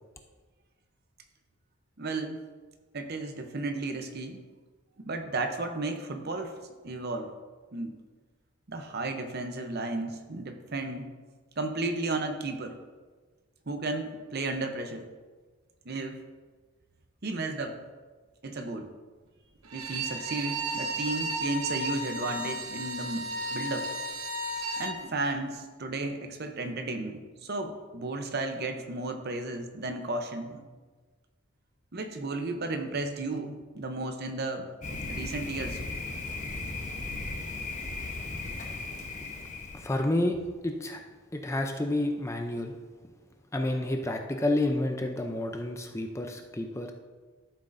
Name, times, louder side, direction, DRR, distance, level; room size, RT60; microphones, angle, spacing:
voice 1, 2.0-2.5 2.9-4.4 5.0-7.3 7.7-7.9 8.7-11.1 11.6-12.8 13.7-15.0 15.8-16.3 17.2-17.8 18.4-18.9 19.7-23.9 24.8-30.7 31.9-34.7 35.1-35.8, right 2 dB, 45° right, 6 dB, 0.8 m, -34 dB
Bowed string instrument, 19.6-25.0, right 1 dB, 75° right, 1.1 m, -34 dB
Thunder, 34.8-40.1, left 3 dB, 35° left, 0.9 m, -36 dB
voice 2, 39.7-40.4 40.6-41.0 41.3-42.7 43.5-46.9, left 1 dB, 15° left, 4 dB, 0.5 m, -29 dB
12.5 x 7.3 x 2.6 m, 1.4 s
head